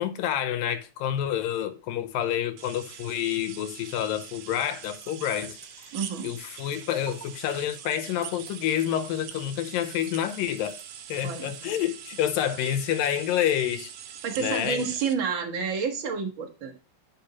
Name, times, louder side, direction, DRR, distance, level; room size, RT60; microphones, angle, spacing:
voice 1, 0.0-5.6 6.2-10.8 11.1-13.9 14.4-14.8, left 10 dB, 85° left, 2.6 m, -28 dB
sound 1, 2.6-15.1, right 9 dB, 80° right, 2.5 m, -43 dB
sound 2, 4.4-11.6, right 4 dB, 30° right, 1.7 m, -52 dB
voice 2, 5.9-6.3 11.2-11.5 14.2-16.8, right 6 dB, 45° right, 1.8 m, -29 dB
10.5 x 5.5 x 2.9 m
omnidirectional pair, 4.0 m